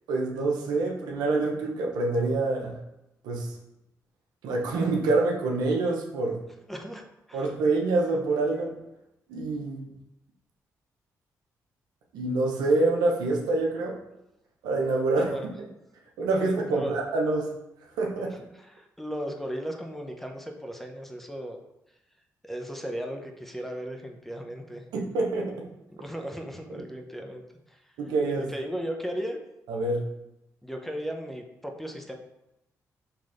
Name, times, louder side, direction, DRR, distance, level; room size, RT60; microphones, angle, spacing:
voice 1, 0.1-2.8 3.2-3.5 4.4-6.4 7.3-8.8 9.3-9.9 12.1-14.0 14.6-15.3 16.2-17.5 18.0-18.4 24.9-25.7 26.7-26.8 28.0-28.5 29.7-30.0, right 3 dB, 90° right, 0 dB, 0.7 m, -26 dB
voice 2, 6.7-7.0 7.3-7.5 15.2-15.5 16.4-16.9 18.6-21.6 22.4-24.8 26.0-27.4 27.7-27.9 28.5-29.4 30.6-32.1, equal, 5° left, 3 dB, 0.7 m, -36 dB
5.7 x 3.1 x 2.5 m, 0.87 s
supercardioid pair, 60°, 7 cm